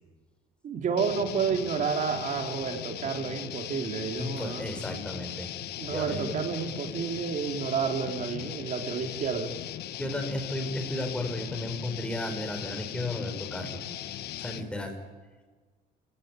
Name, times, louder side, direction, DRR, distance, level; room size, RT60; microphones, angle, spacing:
voice 1, 0.6-5.0 5.8-9.5, right 6 dB, 50° right, 4 dB, 3.9 m, -30 dB
sound 1, 1.0-14.7, left 12 dB, 70° left, 1.2 m, -38 dB
voice 2, 4.2-5.5 5.8-6.3 10.0-13.8 14.4-15.0, left 1 dB, 5° left, 5 dB, 5.0 m, -34 dB
29.5 x 16.5 x 9.5 m, 1.4 s
cardioid pair, 110°, 17 cm